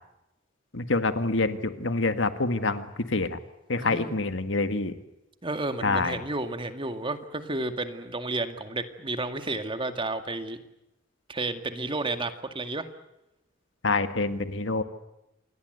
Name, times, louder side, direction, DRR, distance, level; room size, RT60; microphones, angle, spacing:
voice 1, 0.7-3.4 3.7-4.9 5.8-6.2 13.8-14.8, left 3 dB, 70° left, 10 dB, 1.9 m, -26 dB
voice 2, 3.8-4.2 5.4-10.6 11.3-12.9, right 2 dB, 25° right, 8 dB, 2.1 m, -32 dB
28.0 x 21.5 x 8.1 m, 0.91 s
head